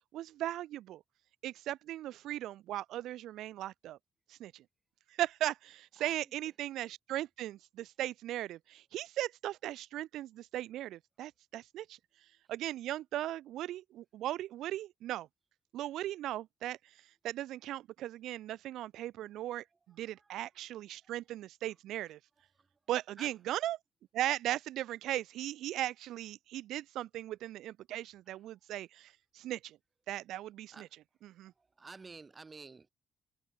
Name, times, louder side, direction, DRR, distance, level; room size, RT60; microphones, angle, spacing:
voice 1, 0.1-1.0 1.4-4.0 4.3-4.6 5.2-12.0 12.5-15.3 15.7-16.8 17.2-22.2 22.9-23.8 24.1-29.8 30.1-30.9 31.2-31.5, right 14 dB, 85° right, 1.0 m, -38 dB
voice 2, 6.0-6.3 19.9-20.7 21.0-21.2 21.7-21.8 22.5-22.7 23.2-23.4 28.3-28.4 30.7-30.9 31.4-32.9, right 4 dB, 20° right, 6.4 m, -53 dB
cardioid pair, 180°, 0 cm